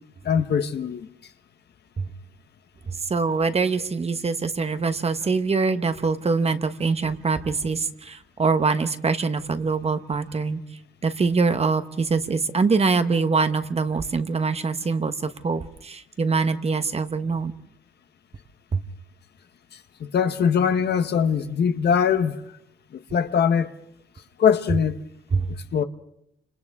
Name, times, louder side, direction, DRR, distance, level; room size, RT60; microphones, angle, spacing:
voice 1, 0.2-1.1 20.0-22.4 22.9-23.7 24.4-25.0 25.7-25.8, left 7 dB, 55° left, 1.2 m, -22 dB
voice 2, 3.1-10.6 11.0-17.5 18.7-18.8 25.3-25.5, right 4 dB, 30° right, 1.2 m, -24 dB
30.0 x 26.5 x 3.6 m
cardioid pair, 90°, 20 cm